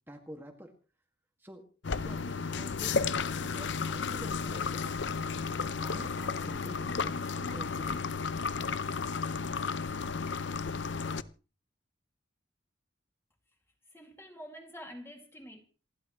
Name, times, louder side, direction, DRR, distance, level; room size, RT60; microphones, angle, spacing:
voice 1, 0.1-0.7 1.4-1.6 2.0-5.3 5.7-8.1, equal, 10° right, 1.9 m, -47 dB
sound 1, 1.8-11.2, left 5 dB, 65° left, 0.6 m, -33 dB
voice 2, 13.9-15.6, equal, 15° left, 2.2 m, -47 dB
28.0 x 11.5 x 3.1 m
head